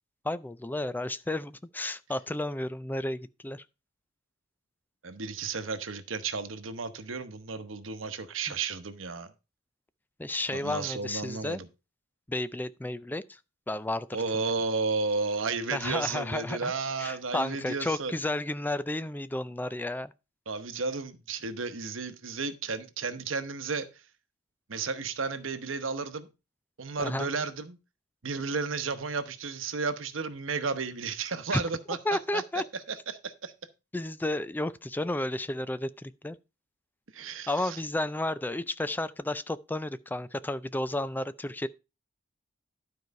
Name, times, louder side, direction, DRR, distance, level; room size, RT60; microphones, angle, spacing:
voice 1, 0.2-3.6 10.2-11.6 12.3-13.4 13.7-14.1 15.7-16.7 17.0-20.1 27.0-27.3 31.5-31.6 32.0-32.6 33.9-36.4 37.5-41.7, left 1 dB, 10° left, 0.4 m, -32 dB
voice 2, 5.0-9.3 10.5-11.7 14.1-18.1 20.5-23.9 24.7-26.3 26.8-27.8 28.2-32.0 32.3-32.4 32.9-33.5 37.1-37.8, right 4 dB, 90° right, 1.0 m, -33 dB
12.0 x 4.7 x 5.2 m
head